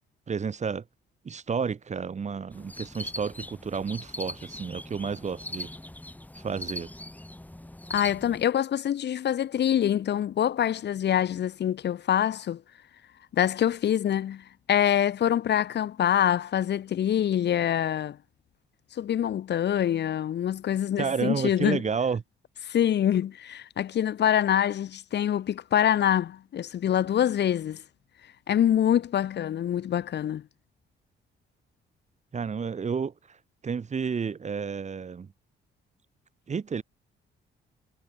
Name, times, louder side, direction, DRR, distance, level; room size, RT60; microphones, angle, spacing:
voice 1, 0.3-0.8 1.2-5.7 6.3-6.9 21.0-22.2 32.3-33.4 33.6-35.3 36.5-36.8, right 6 dB, 35° right, 1.4 m, -31 dB
sound 1, 2.5-8.4, left 1 dB, 10° left, 3.7 m, -40 dB
voice 2, 7.9-12.6 13.3-18.2 18.9-21.8 22.7-27.8 28.5-30.4, left 10 dB, 60° left, 1.2 m, -25 dB
cardioid pair, 90°, 20 cm